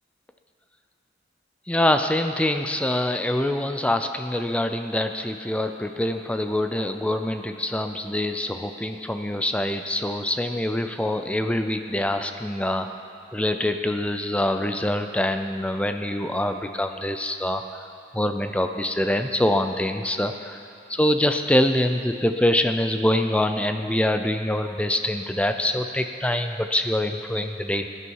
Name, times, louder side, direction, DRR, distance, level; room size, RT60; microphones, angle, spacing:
voice 1, 1.7-12.9 13.3-17.6 18.1-20.6 20.9-27.9, left 1 dB, 5° left, 7 dB, 0.5 m, -24 dB
19.0 x 9.9 x 4.7 m, 2.6 s
head